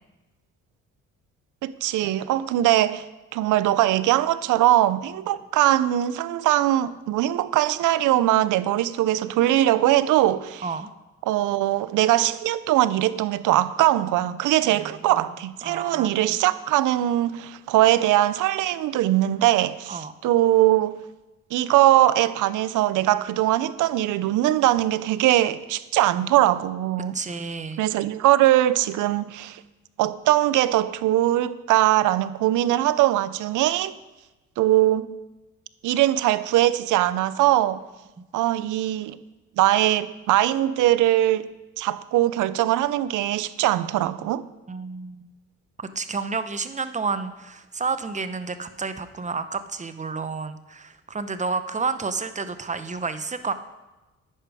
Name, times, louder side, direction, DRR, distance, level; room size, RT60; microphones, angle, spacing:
voice 1, 1.6-3.0 3.3-10.6 11.3-21.0 21.5-27.2 27.8-29.6 30.0-33.9 34.6-35.1 35.8-37.8 38.3-39.2 39.6-41.5 41.8-44.5, right 14 dB, 85° right, 0.6 m, -21 dB
voice 2, 14.6-15.3 15.6-16.4 19.9-20.1 27.1-27.8 44.7-45.3 45.8-53.5, right 4 dB, 25° right, 0.8 m, -30 dB
10.0 x 10.0 x 4.9 m
cardioid pair, 90°, 30 cm